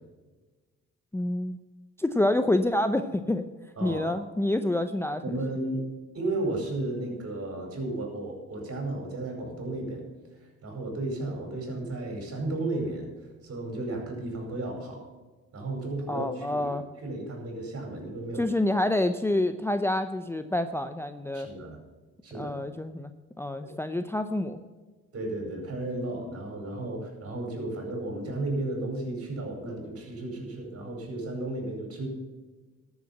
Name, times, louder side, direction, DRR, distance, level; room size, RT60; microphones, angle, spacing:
voice 1, 1.1-1.6 2.0-3.4 3.8-5.2 16.1-16.8 18.3-21.5 22.3-23.1 23.4-24.6, left 1 dB, 10° left, 8 dB, 0.6 m, -27 dB
voice 2, 3.8-4.2 5.2-5.8 6.1-10.0 10.6-13.1 13.4-15.0 15.5-16.7 17.0-18.5 21.3-21.8 22.2-22.6 25.1-32.1, right 2 dB, 50° right, 2 dB, 4.9 m, -33 dB
13.0 x 7.2 x 7.3 m, 1.3 s
cardioid pair, 90°, 30 cm